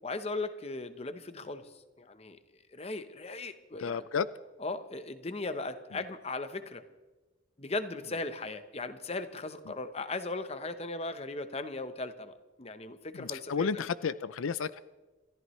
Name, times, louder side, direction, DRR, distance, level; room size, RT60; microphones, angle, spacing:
voice 1, 0.0-2.4 2.7-4.0 4.6-6.8 7.6-13.9, left 2 dB, 30° left, 10 dB, 0.9 m, -38 dB
voice 2, 3.8-4.3 13.1-14.8, left 6 dB, 85° left, 16 dB, 0.5 m, -32 dB
28.0 x 14.5 x 3.2 m, 1.2 s
head